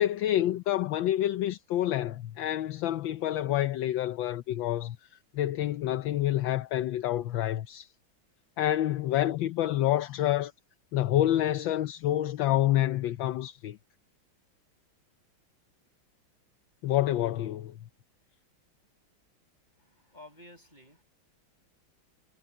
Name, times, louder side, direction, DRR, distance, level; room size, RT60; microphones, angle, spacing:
voice 1, 0.0-5.0 5.3-7.9 8.6-10.5 10.9-13.8 16.8-17.7, left 13 dB, 75° left, 1.4 m, -28 dB
voice 2, 19.8-21.0, left 1 dB, 20° left, 6.9 m, -52 dB
omnidirectional pair, 2.2 m